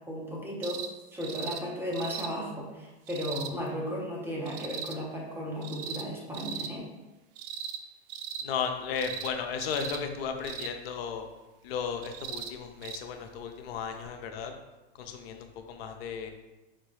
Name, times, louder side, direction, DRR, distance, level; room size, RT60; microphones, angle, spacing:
voice 1, 0.1-0.8 1.1-6.9, equal, 5° right, -3 dB, 0.5 m, -35 dB
sound 1, 0.6-0.9 1.2-1.6 1.9-2.3 3.1-3.5 4.5-4.9 5.6-6.0 6.3-6.7 7.4-7.8 8.1-8.5 8.9-9.3 9.6-10.0 10.4-10.7 12.0-12.5 12.8-13.0 14.1-14.2, right 7 dB, 60° right, 0.4 m, -38 dB
voice 2, 8.4-11.2 11.6-14.5 15.0-16.3, left 6 dB, 65° left, 5 dB, 0.5 m, -35 dB
4.7 x 2.2 x 3.1 m, 1.1 s
hypercardioid pair, 120°, 33 cm